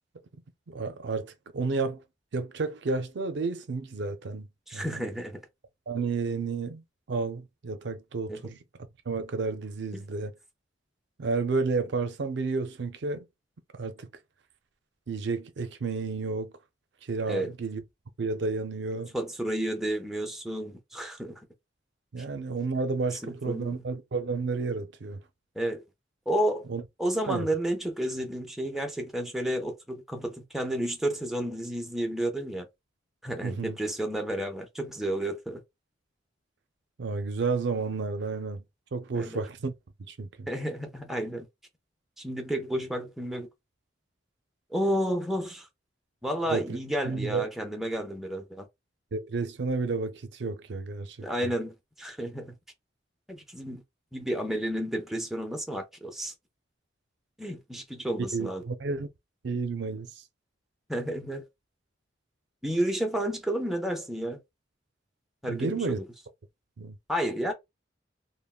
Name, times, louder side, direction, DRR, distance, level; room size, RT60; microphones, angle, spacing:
voice 1, 0.7-2.0 2.3-4.5 4.7-5.0 5.9-6.8 7.1-8.6 9.1-10.3 11.2-13.3 13.7-14.1 15.1-16.5 17.1-17.8 18.2-19.1 22.1-25.2 26.7-26.8 27.3-27.5 33.4-33.8 37.0-38.6 38.9-39.7 40.1-40.5 46.5-46.8 47.0-47.5 49.1-51.5 58.3-59.1 59.4-60.1 65.5-66.0 66.8-67.0, right 4 dB, 65° right, 0.5 m, -31 dB
voice 2, 4.7-5.4 8.3-8.4 9.9-10.0 17.3-17.5 19.1-21.3 23.2-23.8 25.6-25.8 26.3-26.7 27.0-32.7 33.2-35.6 39.1-39.4 40.5-41.5 42.2-43.5 44.7-45.7 46.2-48.7 51.2-52.5 53.3-53.8 54.1-56.3 57.4-58.6 60.9-61.4 62.6-64.4 65.4-66.0 67.1-67.5, right 1 dB, ahead, 0.5 m, -31 dB
3.5 x 2.1 x 2.3 m
head